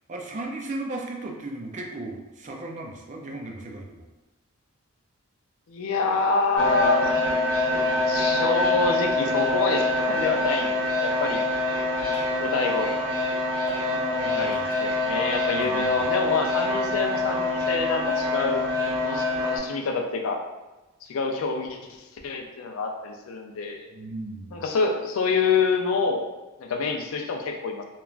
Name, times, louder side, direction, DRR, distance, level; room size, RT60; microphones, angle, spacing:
voice 1, 0.1-4.0 13.9-14.6 15.5-16.0 23.9-24.6, right 2 dB, 35° right, 1 dB, 0.4 m, -36 dB
voice 2, 5.7-7.1 8.1-11.4 12.4-12.9 14.4-18.6 19.0-20.4 21.0-21.8 22.2-23.9 24.5-26.2 26.6-27.8, left 4 dB, 65° left, 3 dB, 0.4 m, -26 dB
sound 1, 6.6-19.6, left 2 dB, 75° right, 1.2 m, -25 dB
3.1 x 2.2 x 2.4 m, 1.1 s
head